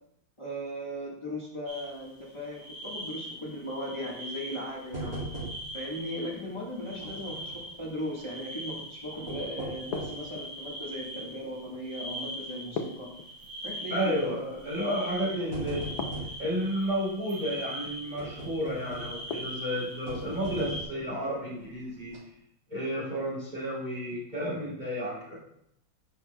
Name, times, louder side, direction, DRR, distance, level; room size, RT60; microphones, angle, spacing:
voice 1, 0.4-5.2 5.7-13.1 13.6-14.7 15.2-15.4 16.0-16.1, equal, 15° left, -5 dB, 1.3 m, -37 dB
sound 1, 1.7-20.8, equal, 75° right, 2.6 m, -42 dB
sound 2, 4.9-5.9 6.2-6.3 7.0-7.7 9.0-10.3 10.9-11.0 11.6-11.8 12.1-12.2 13.4-13.7 14.6-14.7 15.2-16.4 18.2-19.3 20.1-21.0 21.6-21.7 22.0-22.2, right 2 dB, 45° right, 3.5 m, -39 dB
sound 3, 9.9-10.7 12.8-13.8 16.0-16.7 19.3-19.9, left 5 dB, 65° left, 1.0 m, -38 dB
voice 2, 13.9-15.9 16.4-22.2 22.7-25.3, equal, 20° right, -7 dB, 3.2 m, -32 dB
10.5 x 5.8 x 2.3 m, 0.74 s
omnidirectional pair, 2.2 m